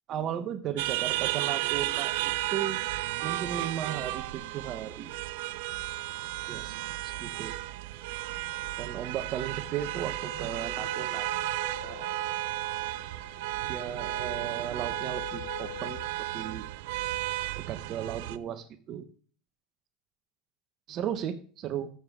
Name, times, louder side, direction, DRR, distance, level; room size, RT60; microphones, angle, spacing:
voice 1, 0.1-2.8 3.2-5.1 6.5-6.8 7.0-7.5 8.8-11.3 11.8-12.1 13.7-16.0 16.3-16.7 17.6-19.1 20.9-21.9, right 9 dB, 40° right, 10 dB, 0.9 m, -35 dB
sound 1, 0.8-18.4, right 17 dB, 75° right, 0.5 m, -33 dB
sound 2, 6.2-16.2, left 10 dB, 70° left, 2.0 m, -47 dB
14.0 x 7.0 x 3.6 m, 0.43 s
supercardioid pair, 145°, 0 cm